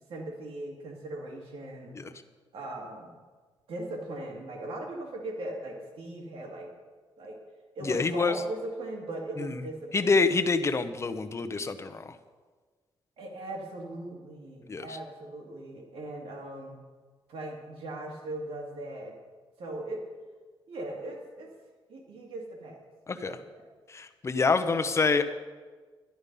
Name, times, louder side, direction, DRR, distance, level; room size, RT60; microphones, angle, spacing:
voice 1, 0.1-2.0 2.5-3.2 3.7-6.7 7.2-7.4 7.8-10.2 13.2-16.8 17.3-19.2 19.6-20.1 20.7-21.5 21.9-22.8 23.1-23.6, right 1 dB, 85° right, -1 dB, 2.1 m, -39 dB
voice 2, 7.8-8.4 9.4-9.6 9.9-12.2 14.7-15.0 23.1-23.4 23.9-25.2, left 4 dB, 30° left, 9 dB, 0.8 m, -27 dB
11.5 x 11.5 x 5.4 m, 1.4 s
wide cardioid pair, 130°, 9 cm